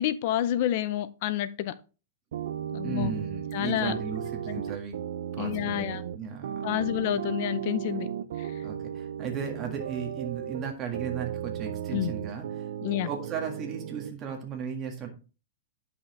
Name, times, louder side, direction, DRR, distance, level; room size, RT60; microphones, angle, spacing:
voice 1, 0.0-1.7 2.7-3.1 3.5-3.9 5.4-6.0 6.6-8.1 8.4-8.5 11.9-12.1 12.8-13.1, left 12 dB, 45° left, 0.5 m, -28 dB
sound 1, 2.3-14.1, right 9 dB, 70° right, 0.5 m, -35 dB
voice 2, 2.8-5.0 5.3-6.9 8.6-12.7 13.0-15.1, right 7 dB, 20° right, 1.7 m, -36 dB
9.9 x 5.7 x 3.2 m
supercardioid pair, 165°, 0 cm